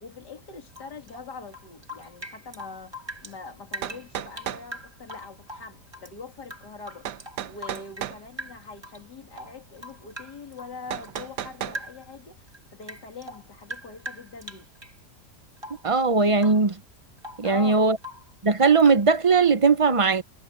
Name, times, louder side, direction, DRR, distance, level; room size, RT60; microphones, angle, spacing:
voice 1, 0.0-14.7 17.4-17.9, left 4 dB, 80° left, 3.3 m, -43 dB
Rain / Drip, 0.7-3.4 3.7-6.1 6.4-8.1 8.4-9.0 9.3-11.3 11.7-12.1 12.5-15.0 15.6-15.9 16.4-16.7 17.0-17.5 18.0-18.3 18.8-19.0, equal, 15° right, 1.7 m, -41 dB
sound 1, 3.3-3.4 3.8-4.7 7.1-8.2 10.9-11.8, right 10 dB, 80° right, 1.5 m, -33 dB
voice 2, 15.8-16.8 17.4-18.0 18.4-20.2, right 4 dB, 35° right, 0.6 m, -19 dB
omnidirectional pair, 1.8 m